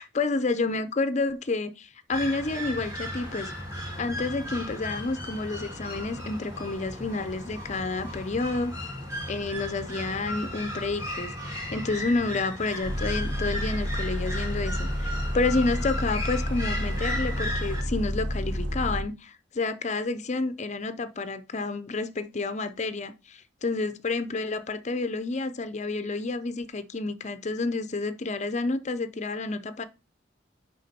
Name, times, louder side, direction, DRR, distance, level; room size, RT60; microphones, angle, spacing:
voice 1, 0.0-3.5 4.0-8.8 9.3-11.3 11.7-29.8, left 3 dB, 40° left, 0.6 m, -29 dB
sound 1, 2.1-17.8, left 1 dB, 15° right, 5.2 m, -36 dB
Bus, 12.8-19.0, equal, 70° right, 1.7 m, -30 dB
10.5 x 3.9 x 4.3 m
head